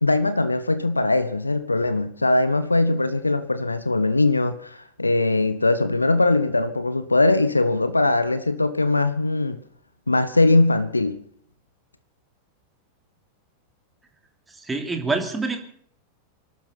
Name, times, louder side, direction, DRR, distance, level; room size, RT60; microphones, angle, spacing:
voice 1, 0.0-9.6 10.1-11.2, left 2 dB, 80° left, 13 dB, 1.1 m, -21 dB
voice 2, 14.5-15.6, right 3 dB, 10° right, 3 dB, 3.0 m, -26 dB
25.0 x 12.5 x 4.1 m, 0.64 s
figure-of-eight pair, 90°, 0 cm